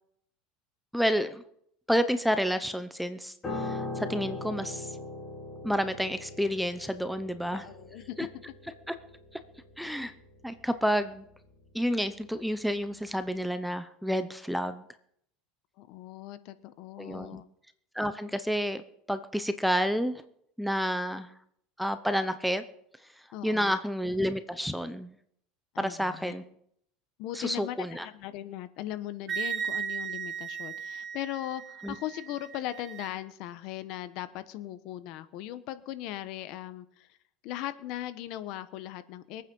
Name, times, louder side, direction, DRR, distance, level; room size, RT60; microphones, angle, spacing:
voice 1, 0.9-1.4 1.9-4.9 5.6-7.7 8.2-8.3 8.9-9.0 9.8-10.1 10.4-11.3 11.7-14.8 17.0-17.4 17.9-20.2 20.6-21.3 21.8-22.6 23.4-25.1 25.8-26.4 27.3-28.1 31.8-31.9, equal, ahead, 11 dB, 0.7 m, -30 dB
Piano, 3.4-12.8 13.1-13.3, left 2 dB, 20° left, 5.4 m, -41 dB
voice 2, 7.5-8.2 15.8-17.5 23.3-23.8 25.7-26.4 27.2-37.1 37.4-39.4, left 13 dB, 55° left, 13 dB, 1.1 m, -39 dB
Wind instrument woodwind instrument, 29.3-33.1, right 7 dB, 25° right, 1.6 m, -36 dB
22.5 x 9.1 x 5.5 m, 0.71 s
supercardioid pair, 150°, 0 cm